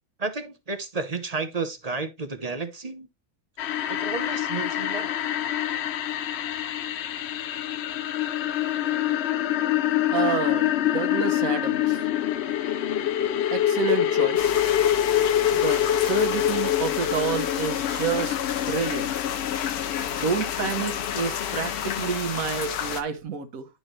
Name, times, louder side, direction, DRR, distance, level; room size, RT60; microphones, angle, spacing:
voice 1, 0.2-3.1 3.9-5.1, right 3 dB, 35° right, 0.7 m, -32 dB
sound 1, 3.6-22.1, left 11 dB, 70° left, 0.6 m, -26 dB
voice 2, 10.1-12.0 13.5-14.5 15.5-19.1 20.1-23.7, right 6 dB, 65° right, 1.5 m, -29 dB
sound 2, 14.4-23.0, left 9 dB, 90° left, 1.3 m, -32 dB
10.5 x 4.3 x 3.1 m
omnidirectional pair, 1.6 m